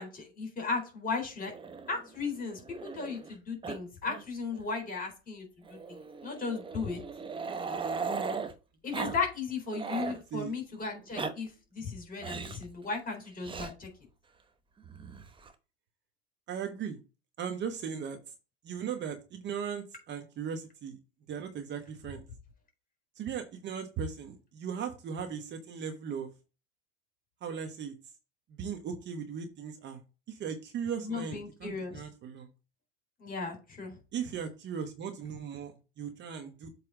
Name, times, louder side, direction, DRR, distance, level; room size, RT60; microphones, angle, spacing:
voice 1, 0.0-1.5 1.9-7.0 8.8-13.9 31.0-32.0 33.2-33.9, left 4 dB, 25° left, 3 dB, 3.7 m, -36 dB
Growling, 1.5-3.3 3.6-3.8 4.0-4.2 4.5-4.6 5.7-8.5 8.9-9.2 9.5-10.2 10.9-11.3 12.2-12.6 13.4-13.7 14.8-15.5, right 5 dB, 15° right, 0.9 m, -38 dB
voice 2, 16.5-17.0 17.4-18.2 18.6-21.0 21.3-22.2 23.2-26.3 27.4-27.9 28.5-30.0 30.3-32.5 34.1-36.7, right 7 dB, 35° right, 6 dB, 1.2 m, -38 dB
7.6 x 3.4 x 4.8 m, 0.30 s
figure-of-eight pair, 85°, 33 cm